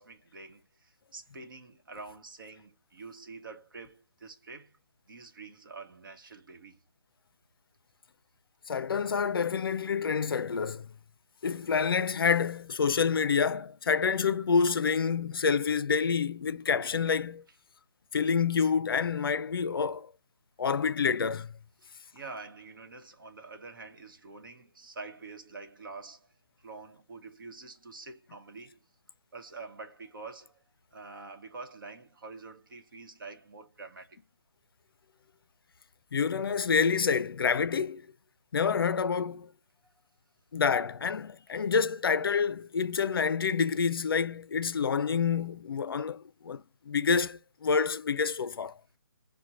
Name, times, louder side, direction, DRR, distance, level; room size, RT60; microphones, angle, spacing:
voice 1, 0.0-4.7 5.1-6.8 21.8-26.3 26.6-28.8 29.3-30.6 30.9-34.2 39.8-39.9 41.5-41.6, right 3 dB, 55° right, 0.9 m, -46 dB
voice 2, 8.7-10.9 11.4-17.4 18.1-20.1 20.6-21.5 36.1-38.1 38.5-39.5 40.5-48.8, left 6 dB, 70° left, 0.4 m, -28 dB
6.1 x 2.1 x 2.7 m
hypercardioid pair, 170°, 13 cm